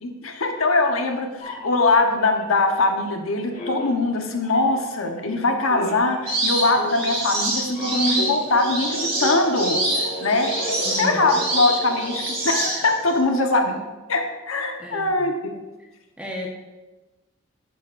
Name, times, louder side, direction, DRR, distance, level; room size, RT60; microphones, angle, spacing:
voice 1, 0.0-13.8 14.1-15.3, left 2 dB, 85° left, 4 dB, 1.1 m, -22 dB
sound 1, 1.4-3.2 3.5-13.0, left 1 dB, 40° left, 1.8 m, -35 dB
sound 2, 6.3-13.1, right 1 dB, 25° right, 2.5 m, -26 dB
voice 2, 10.8-11.4 14.8-15.3 15.8-15.9 16.2-16.5, left 1 dB, 5° right, -1 dB, 1.2 m, -34 dB
11.0 x 9.4 x 2.6 m, 1.1 s
head